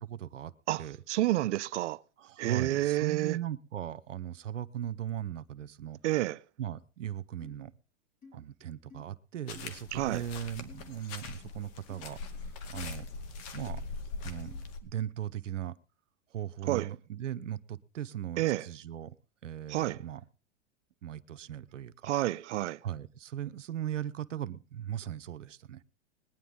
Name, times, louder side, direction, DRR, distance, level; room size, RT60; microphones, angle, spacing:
voice 1, 0.0-0.5 0.8-1.0 2.2-6.0 6.6-7.7 8.3-12.2 12.7-13.1 13.5-13.8 14.1-14.5 14.8-15.8 16.3-19.2 19.4-20.2 21.0-22.1 22.8-25.8, right 11 dB, 90° right, 0.9 m, -38 dB
voice 2, 0.7-2.0 2.4-3.4 6.0-6.4 9.9-10.2 16.7-16.9 18.4-18.6 19.7-20.0 22.1-22.8, right 16 dB, 75° right, 0.6 m, -29 dB
sound 1, 7.4-7.6 8.2-8.3 8.9-9.0 9.5-9.8 10.7-10.9 11.9-12.0 12.7-12.9 13.6-13.7 14.4-14.6, left 4 dB, 25° left, 4.7 m, -52 dB
sound 2, 9.5-14.8, left 4 dB, 45° left, 2.4 m, -42 dB
20.5 x 10.0 x 3.7 m
hypercardioid pair, 120°, 36 cm